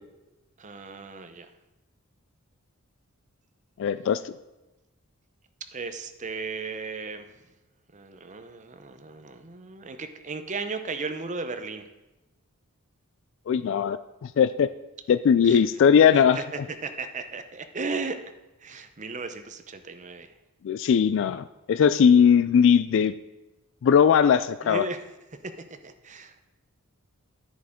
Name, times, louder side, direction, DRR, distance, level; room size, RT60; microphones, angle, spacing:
voice 1, 0.6-1.5 5.7-7.4 7.9-11.9 15.4-15.6 16.1-18.2 18.6-20.3 24.6-25.0 25.4-25.5 25.8-26.4, right 4 dB, 35° right, 8 dB, 0.7 m, -35 dB
voice 2, 3.8-4.3 13.5-14.7 15.1-16.4 20.6-23.1 23.8-24.8, left 7 dB, 60° left, 13 dB, 0.3 m, -19 dB
10.0 x 10.0 x 3.6 m, 1.0 s
head